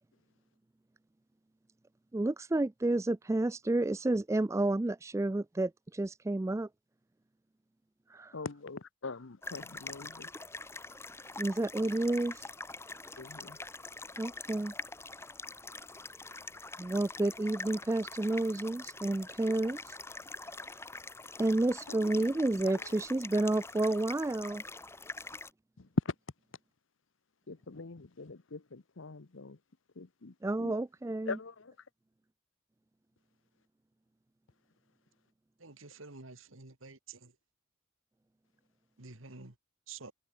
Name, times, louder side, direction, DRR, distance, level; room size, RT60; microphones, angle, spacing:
voice 1, 2.1-6.7 8.1-8.3 11.4-12.5 14.2-14.7 16.8-20.0 21.4-24.6 30.4-31.4, right 2 dB, 15° right, 0.3 m, -30 dB
voice 2, 8.3-10.3 13.2-13.6 21.9-22.2 22.6-22.7 26.0-26.1 27.5-29.6 30.0-30.3 30.6-30.7 31.3-31.7, left 4 dB, 70° left, 0.9 m, -43 dB
sound 1, 9.4-25.5, left 3 dB, 10° left, 2.7 m, -45 dB
voice 3, 35.6-37.3 39.0-39.5 39.9-40.1, right 4 dB, 75° right, 2.4 m, -49 dB
head